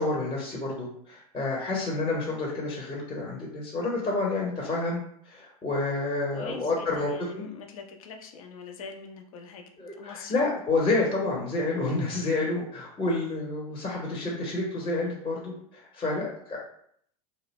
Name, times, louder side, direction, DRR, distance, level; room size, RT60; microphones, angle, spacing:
voice 1, 0.0-5.0 5.2-7.5 9.8-16.6, left 2 dB, 25° left, -3 dB, 0.8 m, -29 dB
voice 2, 6.3-10.6 12.3-12.6, left 5 dB, 70° left, 3 dB, 0.6 m, -42 dB
2.6 x 2.0 x 3.0 m, 0.66 s
hypercardioid pair, 95°, 19 cm